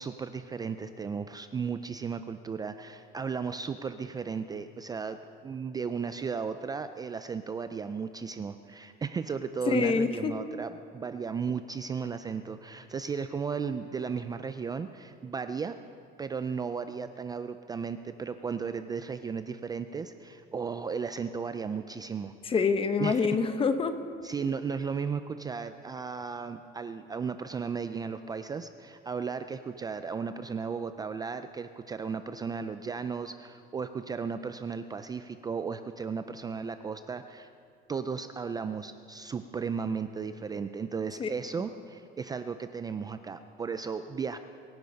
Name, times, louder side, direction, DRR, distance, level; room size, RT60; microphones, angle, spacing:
voice 1, 0.0-15.8 16.2-22.3 23.0-23.3 24.2-37.5 37.9-44.4, right 5 dB, 20° right, 10 dB, 0.4 m, -35 dB
voice 2, 9.7-10.3 22.4-23.9 41.2-41.3, left 5 dB, 25° left, 10 dB, 0.9 m, -26 dB
24.0 x 10.5 x 5.3 m, 2.4 s
cardioid pair, 155°, 20 cm